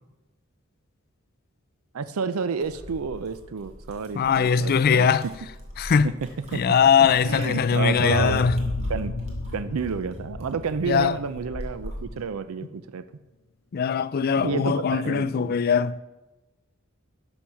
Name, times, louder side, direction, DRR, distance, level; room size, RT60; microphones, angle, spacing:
voice 1, 1.9-5.1 6.5-6.6 7.2-8.5 8.9-9.1 9.5-13.0 14.4-15.6, right 5 dB, 90° right, 0.5 m, -30 dB
sound 1, 2.6-12.3, equal, 30° right, 2.3 m, -44 dB
voice 2, 4.2-5.3 5.8-6.1 6.5-8.6 10.9-11.2 13.7-16.0, left 6 dB, 45° left, 0.3 m, -21 dB
sound 2, 6.9-12.0, left 2 dB, 70° left, 0.8 m, -32 dB
11.5 x 6.4 x 5.8 m
head